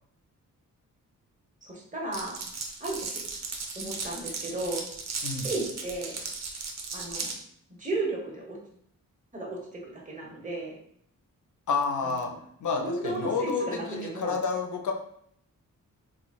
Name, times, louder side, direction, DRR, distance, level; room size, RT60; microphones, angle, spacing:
voice 1, 1.6-2.4 2.8-3.2 3.7-4.8 5.2-6.2 6.9-7.3 7.8-8.6 9.3-10.8 12.0-12.4 12.8-14.4, right 2 dB, 25° right, -3 dB, 1.0 m, -34 dB
Glass, 2.1-7.4, right 4 dB, 55° right, 0.7 m, -36 dB
voice 2, 11.7-12.3 12.6-14.9, left 5 dB, 65° left, 2 dB, 0.6 m, -29 dB
4.0 x 3.1 x 2.3 m, 0.69 s
wide cardioid pair, 125°, 33 cm